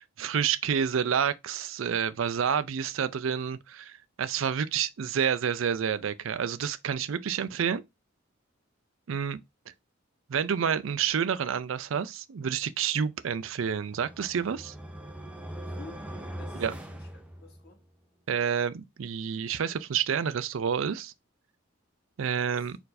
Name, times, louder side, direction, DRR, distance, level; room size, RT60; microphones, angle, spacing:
voice 1, 0.0-7.8 9.1-9.4 10.3-14.7 16.6-16.7 18.3-21.1 22.2-22.8, right 7 dB, 70° right, 0.4 m, -29 dB
sound 1, 13.5-17.9, right 1 dB, 5° right, 0.7 m, -41 dB
voice 2, 15.7-16.0 16.4-17.8 22.5-22.8, left 3 dB, 55° left, 1.2 m, -51 dB
4.5 x 2.6 x 4.0 m
head